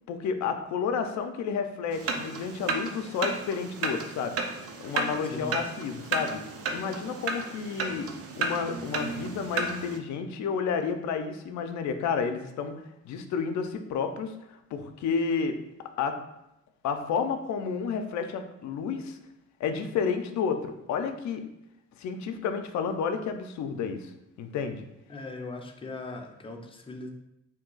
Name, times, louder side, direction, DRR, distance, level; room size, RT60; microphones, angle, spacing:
voice 1, 0.1-4.4 4.8-6.4 6.7-8.1 8.4-12.7 13.0-15.6 16.0-16.2 16.8-19.2 19.6-21.4 22.0-24.1 24.4-24.9, left 6 dB, 70° left, 7 dB, 0.4 m, -31 dB
sound 1, 1.9-10.0, right 3 dB, 50° right, 0.5 m, -33 dB
voice 2, 25.1-27.1, left 2 dB, 20° left, 3 dB, 0.5 m, -39 dB
2.7 x 2.3 x 3.8 m, 0.86 s
cardioid pair, 90°, 30 cm